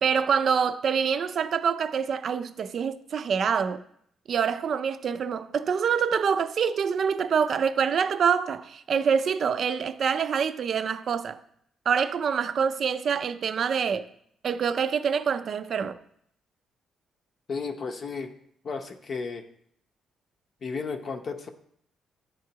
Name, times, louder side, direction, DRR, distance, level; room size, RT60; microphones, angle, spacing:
voice 1, 0.0-3.8 4.3-11.4 11.9-14.1 14.4-16.0, right 7 dB, 55° right, 0.4 m, -26 dB
voice 2, 17.5-18.3 18.6-19.4 20.6-21.5, left 4 dB, 50° left, 0.6 m, -33 dB
10.5 x 3.6 x 2.8 m
cardioid pair, 90°, 0 cm